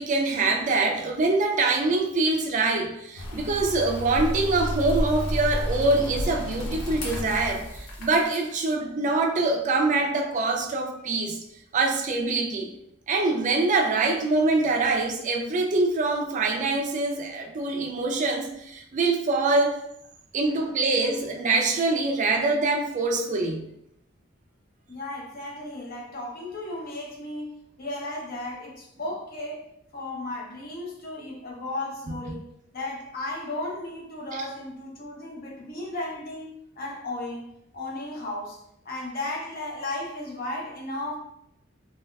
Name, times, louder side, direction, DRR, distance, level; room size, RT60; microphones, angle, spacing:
voice 1, 0.0-11.4 11.7-12.7 13.1-19.8 20.3-23.6 32.3-32.4, right 3 dB, 40° right, 1 dB, 0.4 m, -24 dB
sound 1, 3.2-8.5, equal, 90° left, 0.7 m, -31 dB
voice 2, 20.5-21.2 24.9-41.2, left 2 dB, 50° left, -1 dB, 0.7 m, -35 dB
3.3 x 2.3 x 2.2 m, 0.76 s
head